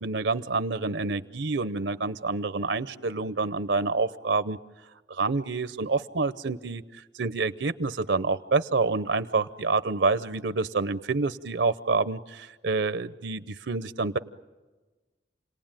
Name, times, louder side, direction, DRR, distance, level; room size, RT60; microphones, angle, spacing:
voice 1, 0.0-4.6 5.1-6.8 7.1-14.2, right 3 dB, 75° right, 13 dB, 0.8 m, -27 dB
29.0 x 19.0 x 9.0 m, 1.3 s
head